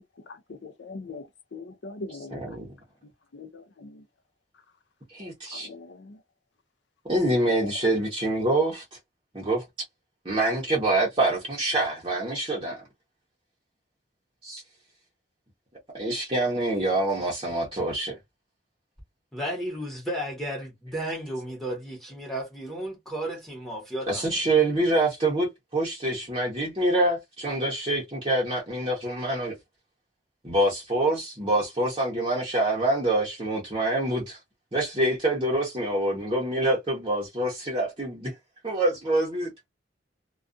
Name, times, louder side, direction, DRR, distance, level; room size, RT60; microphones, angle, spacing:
voice 1, 0.3-2.4 3.3-4.0 5.5-6.2 7.3-7.7, left 3 dB, 75° left, 0.5 m, -40 dB
voice 2, 2.3-2.7 5.1-5.7 7.1-8.8 9.3-9.6 10.2-12.8 14.4-14.6 15.9-18.1 24.1-29.5 30.4-34.4 34.7-38.3 38.6-39.5, right 2 dB, 25° right, 0.8 m, -26 dB
voice 3, 19.3-24.4, right 1 dB, ahead, 1.0 m, -33 dB
2.4 x 2.3 x 2.5 m
head